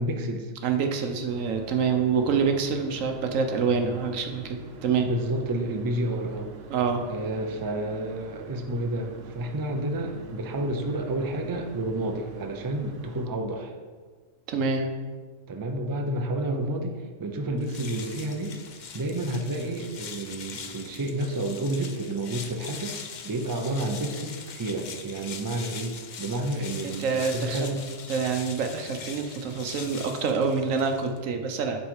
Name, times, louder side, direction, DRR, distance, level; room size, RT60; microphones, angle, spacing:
voice 1, 0.0-0.5 5.0-6.5 7.0-13.7 15.5-18.6 18.9-23.0 23.2-27.8, right 1 dB, 30° right, 4 dB, 0.4 m, -30 dB
voice 2, 0.6-5.1 6.7-7.0 14.5-14.9 26.8-27.8 28.1-31.8, right 5 dB, 80° right, 5 dB, 1.2 m, -26 dB
sound 1, 1.3-13.3, right 4 dB, 60° right, 0.7 m, -45 dB
sound 2, 17.6-31.3, left 6 dB, 55° left, 0.5 m, -42 dB
10.0 x 4.0 x 4.8 m, 1.5 s
omnidirectional pair, 1.3 m